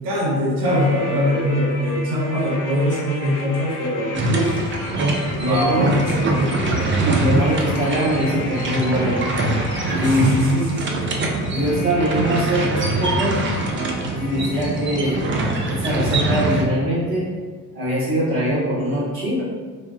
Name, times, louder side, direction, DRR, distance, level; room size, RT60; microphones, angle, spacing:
voice 1, 0.0-4.6 5.5-6.6 10.0-11.1, equal, 65° right, -5 dB, 1.0 m, -22 dB
sound 1, 0.6-15.7 15.9-16.0, left 2 dB, 40° left, 0.8 m, -35 dB
sound 2, 4.1-16.6, right 2 dB, 25° right, 0.5 m, -23 dB
voice 2, 5.4-5.9 7.2-9.2 10.0-10.4 11.5-13.4 14.2-15.2 15.7-17.3 17.7-19.4, equal, 90° right, -10 dB, 1.2 m, -22 dB
4.1 x 2.3 x 2.4 m, 1.5 s
hypercardioid pair, 55°, 45 cm